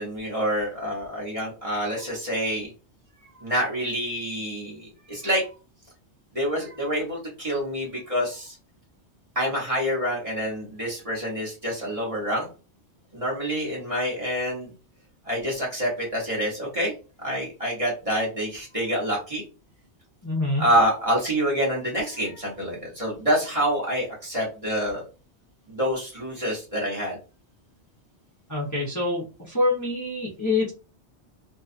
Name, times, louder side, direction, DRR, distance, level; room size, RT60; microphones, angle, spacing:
voice 1, 0.0-2.7 3.3-5.5 6.3-8.6 9.3-12.5 13.1-14.7 15.2-16.9 17.2-19.4 20.6-25.0 25.7-27.2, equal, 30° right, -4 dB, 1.0 m, -27 dB
voice 2, 20.2-20.6 28.5-30.7, left 2 dB, 20° left, -5 dB, 0.7 m, -26 dB
2.6 x 2.3 x 2.4 m, 0.32 s
omnidirectional pair, 1.2 m